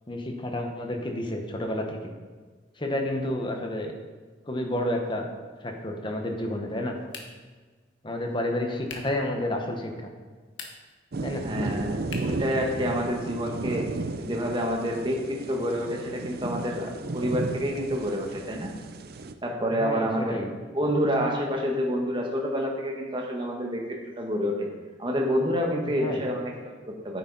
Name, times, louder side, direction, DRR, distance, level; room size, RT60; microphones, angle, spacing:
voice 1, 0.1-2.0 2.8-3.9 4.5-5.3 5.6-6.9 8.0-10.1 11.2-11.7 19.8-20.5 26.0-26.2, left 1 dB, 25° left, 3 dB, 1.1 m, -30 dB
sound 1, 7.1-7.6 8.8-9.2 10.4-11.0 12.1-12.5, left 4 dB, 75° left, 1.4 m, -41 dB
sound 2, 11.1-19.3, right 3 dB, 50° right, 0.5 m, -34 dB
voice 2, 11.4-13.9 14.2-18.7 19.4-20.4 20.7-24.7 25.0-27.2, equal, 25° right, 0 dB, 1.3 m, -28 dB
9.7 x 8.8 x 4.0 m, 1.4 s
head